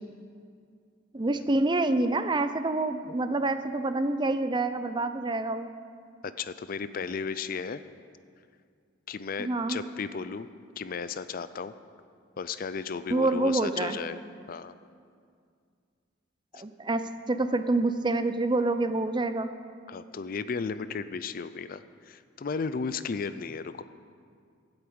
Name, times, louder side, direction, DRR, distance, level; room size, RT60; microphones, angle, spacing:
voice 1, 1.1-5.7 9.4-9.8 13.1-14.0 16.5-19.5, right 2 dB, 25° right, 10 dB, 0.5 m, -27 dB
voice 2, 6.2-7.8 9.1-10.5 10.8-11.7 12.4-14.2 14.5-14.7 16.5-16.6 19.9-23.8, left 5 dB, 50° left, 13 dB, 0.4 m, -34 dB
13.0 x 8.0 x 8.6 m, 2.2 s
head